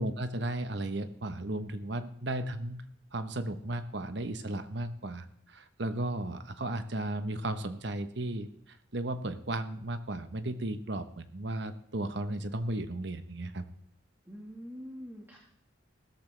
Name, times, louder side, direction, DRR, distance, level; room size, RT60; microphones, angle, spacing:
voice 1, 0.0-2.8 3.1-13.6, right 1 dB, 65° right, 10 dB, 1.1 m, -35 dB
voice 2, 14.2-15.4, equal, 10° right, -1 dB, 1.7 m, -44 dB
16.0 x 13.5 x 3.4 m, 0.67 s
head